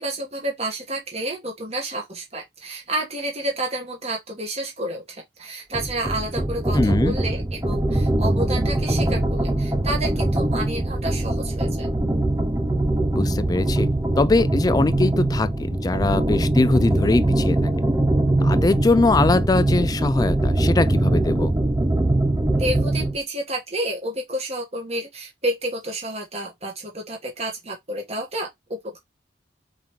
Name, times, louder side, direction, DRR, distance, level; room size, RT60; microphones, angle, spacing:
voice 1, 0.0-11.9 22.5-29.0, right 1 dB, 35° right, 1.4 m, -30 dB
sound 1, 5.7-23.2, right 1 dB, 15° right, 0.7 m, -22 dB
voice 2, 6.7-7.2 13.1-13.9 14.2-17.7 18.4-21.5, left 3 dB, 20° left, 0.3 m, -21 dB
4.4 x 3.7 x 3.1 m
head